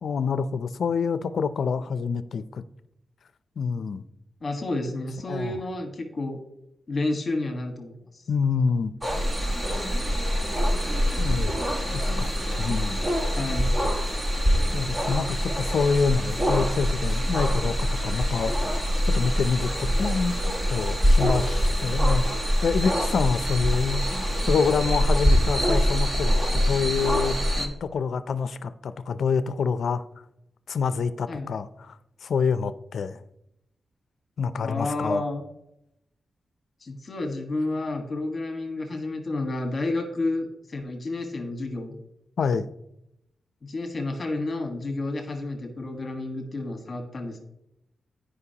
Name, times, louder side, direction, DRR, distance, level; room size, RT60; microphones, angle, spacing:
voice 1, 0.0-2.6 3.6-4.0 5.3-5.6 8.3-8.9 11.2-11.6 11.9-12.3 12.6-13.1 14.7-24.0 24.5-27.4 27.8-30.0 30.7-31.9 32.2-33.2 34.4-35.2 42.4-42.7, left 5 dB, 65° left, 0.4 m, -27 dB
voice 2, 4.4-6.4 6.9-8.2 13.3-13.7 27.5-27.7 31.3-31.5 34.6-35.4 36.8-42.0 43.6-47.4, left 2 dB, 30° left, 1.5 m, -30 dB
sound 1, 9.0-27.7, equal, 25° right, 1.2 m, -24 dB
13.5 x 5.2 x 2.9 m
wide cardioid pair, 160°, 0 cm